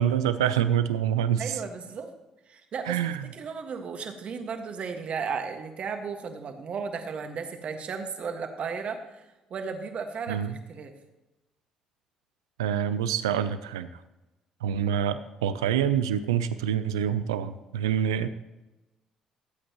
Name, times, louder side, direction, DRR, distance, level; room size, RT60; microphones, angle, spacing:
voice 1, 0.0-1.6 2.9-3.2 10.3-10.6 12.6-14.0 14.6-18.3, right 9 dB, 85° right, 12 dB, 0.6 m, -26 dB
voice 2, 1.4-2.1 2.5-3.0 3.3-10.9, right 5 dB, 55° right, 5 dB, 1.7 m, -35 dB
19.5 x 8.6 x 3.1 m, 1.0 s
hypercardioid pair, 50°, 3 cm